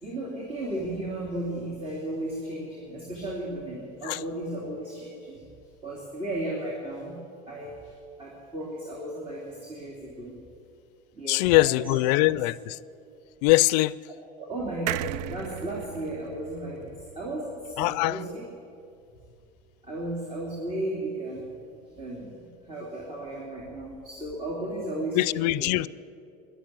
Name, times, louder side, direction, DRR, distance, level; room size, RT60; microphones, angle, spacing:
voice 1, 0.0-5.4 5.8-7.2 7.5-7.9 8.2-10.3 11.1-12.3 14.4-18.4 19.8-21.5 22.0-25.7, right 1 dB, 25° right, 2.9 m, -35 dB
voice 2, 11.3-12.8 13.4-14.0 17.8-18.2 25.1-25.9, left 19 dB, 75° left, 0.4 m, -22 dB
sound 1, 14.9-18.3 18.7-18.8 19.0-19.1, right 14 dB, 80° right, 0.4 m, -37 dB
13.0 x 11.0 x 9.8 m
supercardioid pair, 130°, 21 cm